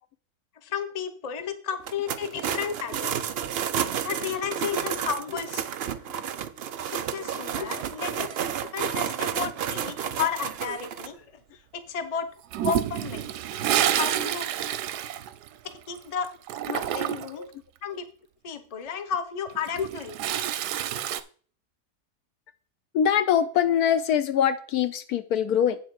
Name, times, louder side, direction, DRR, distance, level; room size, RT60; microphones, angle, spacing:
voice 1, 0.6-3.2 4.0-5.6 6.9-8.3 8.7-11.3 11.7-12.3 12.6-13.3 14.0-14.5 15.9-16.3 16.7-17.5 17.8-18.0 18.4-20.1, left 7 dB, 35° left, 0.7 m, -32 dB
sound 1, 1.8-11.1, right 9 dB, 70° right, 0.5 m, -31 dB
Toilet flush, 12.5-17.4 19.5-21.2, right 11 dB, 90° right, 1.2 m, -28 dB
voice 2, 22.9-25.8, left 9 dB, 75° left, 1.2 m, -23 dB
8.3 x 6.6 x 4.6 m
omnidirectional pair, 1.7 m